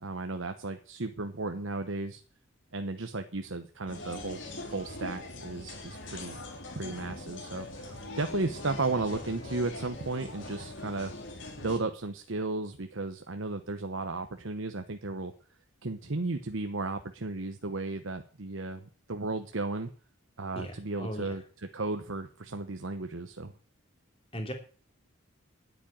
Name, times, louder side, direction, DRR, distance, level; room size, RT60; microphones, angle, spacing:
voice 1, 0.0-2.2 2.7-4.4 4.7-6.4 6.7-11.1 11.6-15.3 15.8-19.9 20.4-23.5, right 3 dB, 70° right, 7 dB, 1.1 m, -34 dB
sound 1, 3.9-11.8, left 2 dB, 60° left, 3.3 m, -42 dB
voice 2, 20.6-21.3 24.3-24.5, equal, 25° left, 4 dB, 3.1 m, -38 dB
10.5 x 8.9 x 9.0 m, 0.40 s
head